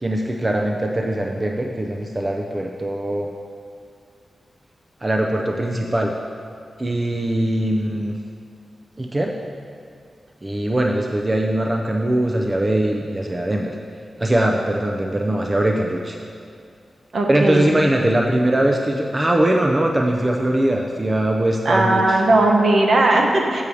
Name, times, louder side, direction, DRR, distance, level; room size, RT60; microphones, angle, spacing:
voice 1, 0.0-3.3 5.0-6.1 6.8-8.1 9.0-9.3 10.4-13.7 14.2-16.2 17.3-22.2, right 1 dB, 20° right, 1 dB, 0.4 m, -21 dB
voice 2, 17.1-17.7 21.6-23.6, right 2 dB, 60° right, 0 dB, 1.0 m, -17 dB
6.9 x 4.7 x 6.8 m, 2.3 s
wide cardioid pair, 120°, 0 cm